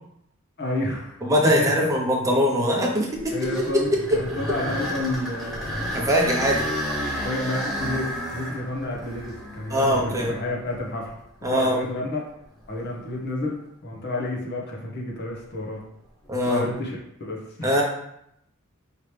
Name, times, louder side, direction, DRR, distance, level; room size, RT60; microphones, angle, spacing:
voice 1, 0.6-1.2 1.4-1.7 3.3-6.0 7.2-11.1 11.5-12.2 12.7-15.8 16.4-17.8, left 2 dB, 55° left, -2 dB, 1.0 m, -30 dB
voice 2, 1.2-3.4 3.7-4.2 5.9-6.7 9.7-10.3 11.4-11.8 16.3-16.6 17.6-17.8, equal, 15° right, -2 dB, 0.8 m, -22 dB
sound 1, 3.1-11.2 11.8-11.9 12.6-12.8 16.3-16.6, equal, ahead, 1.2 m, -32 dB
4.9 x 3.0 x 3.3 m, 0.76 s
head